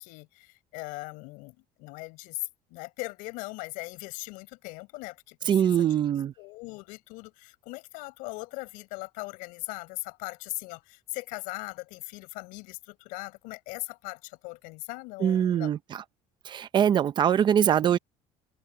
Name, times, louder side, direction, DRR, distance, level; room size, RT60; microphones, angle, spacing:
voice 1, 0.0-6.1 6.4-15.7, left 25 dB, 85° left, 6.9 m, -40 dB
voice 2, 5.5-6.3 15.2-16.0 16.5-18.0, right 9 dB, 35° right, 0.7 m, -23 dB
open air
cardioid pair, 155°, 14 cm